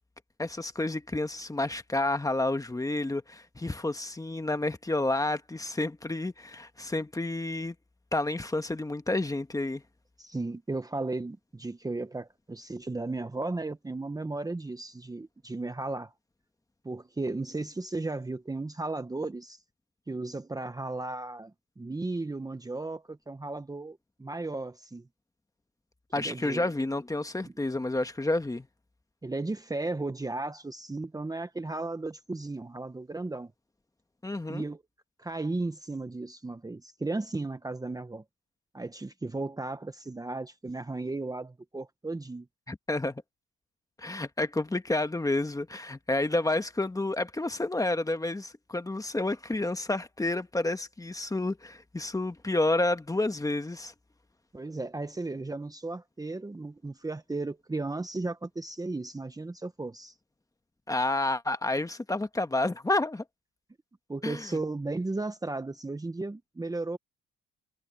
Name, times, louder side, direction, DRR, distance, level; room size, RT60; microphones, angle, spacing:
voice 1, 0.4-7.7 8.1-9.8 26.1-28.7 34.2-34.6 42.7-43.2 44.0-53.9 60.9-63.2 64.2-64.5, left 2 dB, 10° left, 1.4 m, -30 dB
voice 2, 10.2-16.1 16.8-19.6 20.1-25.1 26.1-26.7 27.4-27.5 29.2-33.5 34.5-34.8 35.2-38.2 38.7-42.5 54.5-60.1 64.1-67.0, right 2 dB, 10° right, 1.1 m, -35 dB
cardioid pair, 110°, 30 cm